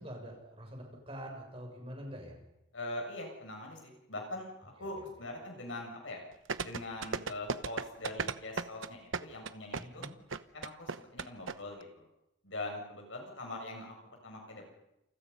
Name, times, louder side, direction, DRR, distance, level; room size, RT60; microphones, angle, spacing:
voice 1, 0.0-2.4 4.8-5.1 9.8-10.2, equal, 30° right, 1 dB, 6.8 m, -45 dB
voice 2, 2.7-6.2 6.6-10.1 10.5-12.0 12.4-13.9 14.2-14.7, left 2 dB, 75° left, 1 dB, 7.4 m, -42 dB
sound 1, 6.5-11.5 11.8-11.9, right 5 dB, 80° right, 1.0 m, -35 dB
29.0 x 28.5 x 5.6 m, 0.90 s
head